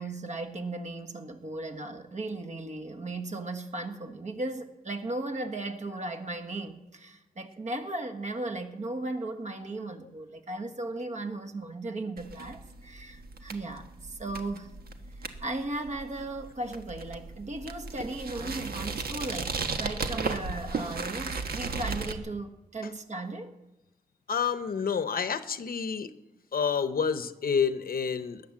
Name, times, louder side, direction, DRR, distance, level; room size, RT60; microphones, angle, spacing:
voice 1, 0.0-14.7 15.2-23.5, right 2 dB, 50° right, 6 dB, 1.5 m, -36 dB
sound 1, 12.2-22.2, right 4 dB, 85° right, 1.3 m, -36 dB
voice 2, 24.3-26.1 26.5-28.4, left 6 dB, 70° left, 11 dB, 0.8 m, -28 dB
19.5 x 9.9 x 7.4 m, 0.98 s
wide cardioid pair, 135°, 15 cm